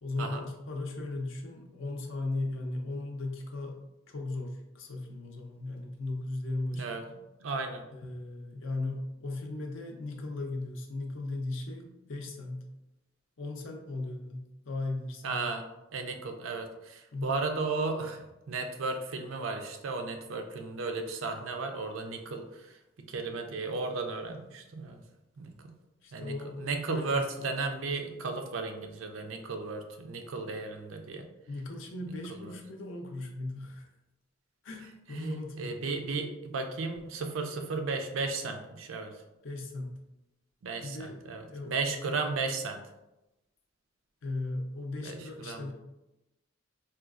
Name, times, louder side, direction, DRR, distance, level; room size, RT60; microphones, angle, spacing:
voice 1, 0.0-3.8 4.1-6.9 7.9-12.7 13.4-15.4 17.1-17.4 26.0-26.6 26.9-27.5 31.5-33.9 34.6-35.8 39.4-40.0 40.8-42.0 44.2-45.7, left 2 dB, 75° left, 2 dB, 0.6 m, -37 dB
voice 2, 7.4-7.8 15.2-15.7 15.9-22.7 23.1-25.0 25.4-25.7 26.1-31.3 32.4-32.5 35.1-39.1 40.6-42.8 45.0-45.7, right 3 dB, 85° right, 5 dB, 0.5 m, -34 dB
4.3 x 2.3 x 2.4 m, 0.97 s
head